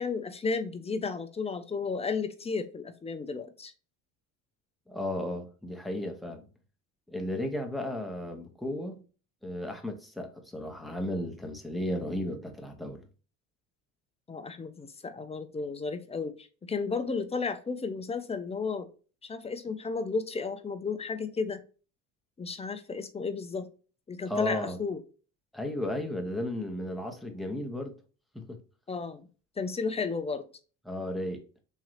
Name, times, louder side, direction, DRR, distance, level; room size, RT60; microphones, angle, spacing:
voice 1, 0.0-3.7 14.3-18.9 19.2-21.6 22.4-23.7 24.1-25.0 28.9-29.3 29.6-30.5, left 4 dB, 15° left, 0.5 m, -33 dB
voice 2, 4.9-6.4 7.1-9.0 9.4-13.1 24.3-24.8 25.5-27.9 28.3-28.6 30.9-31.4, left 1 dB, ahead, 0.9 m, -34 dB
3.8 x 3.1 x 3.1 m
supercardioid pair, 100°, 36 cm